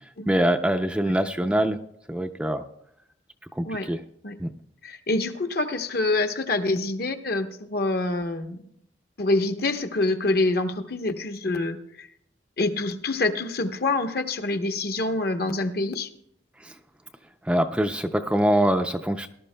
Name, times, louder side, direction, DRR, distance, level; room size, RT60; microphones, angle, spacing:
voice 1, 0.3-1.8 2.1-2.6 3.6-4.0 4.4-4.5 16.6-16.7 17.4-19.3, right 1 dB, 5° right, 6 dB, 0.4 m, -24 dB
voice 2, 4.8-8.6 9.2-12.1 12.6-16.1, left 2 dB, 55° left, 7 dB, 0.9 m, -26 dB
18.5 x 12.0 x 2.2 m, 0.72 s
head